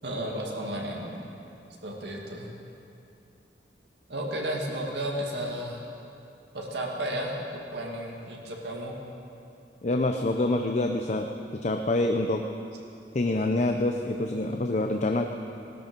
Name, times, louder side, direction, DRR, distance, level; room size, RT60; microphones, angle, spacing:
voice 1, 0.0-1.2 1.8-2.5 4.1-5.8 6.5-9.0, right 1 dB, 70° right, -1 dB, 2.1 m, -33 dB
voice 2, 9.8-12.5 13.1-15.3, left 2 dB, 40° left, 4 dB, 0.6 m, -26 dB
19.0 x 12.5 x 5.3 m, 2.7 s
head